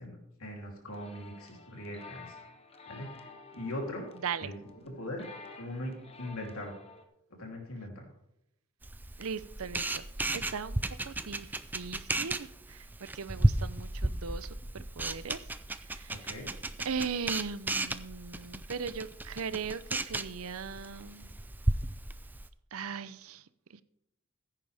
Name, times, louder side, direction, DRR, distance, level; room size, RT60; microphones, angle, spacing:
voice 1, 0.0-2.4 2.9-4.1 4.4-5.2 5.6-6.7 7.4-8.1 16.1-16.5, left 1 dB, 90° left, 3.3 m, -41 dB
sound 1, 0.9-7.0, left 4 dB, 30° left, 1.0 m, -51 dB
Camera, 8.8-22.5, right 1 dB, 10° right, 0.3 m, -34 dB
voice 2, 9.2-10.0 10.3-15.4 15.8-16.3 16.8-21.3 22.7-23.8, right 5 dB, 85° right, 0.6 m, -39 dB
15.5 x 9.2 x 3.5 m
head